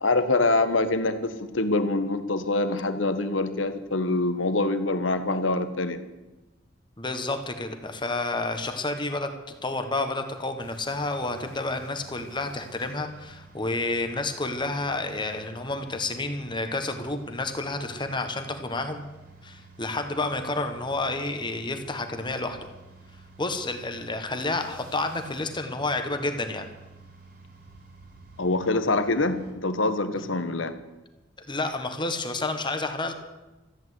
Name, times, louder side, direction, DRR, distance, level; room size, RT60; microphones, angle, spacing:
voice 1, 0.0-6.0 28.4-30.7, left 2 dB, 85° left, 10 dB, 1.4 m, -25 dB
voice 2, 7.0-9.3 9.6-19.0 19.4-22.7 23.4-26.7 31.4-33.1, left 2 dB, 25° left, 7 dB, 1.5 m, -30 dB
sound 1, 10.6-29.5, right 3 dB, 55° right, 4.0 m, -51 dB
14.5 x 9.0 x 9.6 m, 1.1 s
head